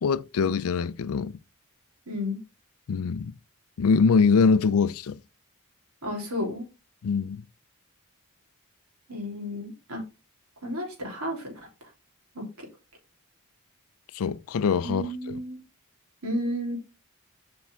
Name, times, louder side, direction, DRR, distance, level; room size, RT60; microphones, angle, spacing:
voice 1, 0.0-1.4 2.9-3.3 3.8-5.2 7.0-7.4 14.1-15.1, left 5 dB, 65° left, 0.4 m, -23 dB
voice 2, 2.1-2.4 6.0-6.7 9.1-10.0 10.6-11.6 12.4-12.7 14.8-15.6 16.2-16.8, equal, 70° right, 3.5 m, -32 dB
7.4 x 5.3 x 3.5 m
head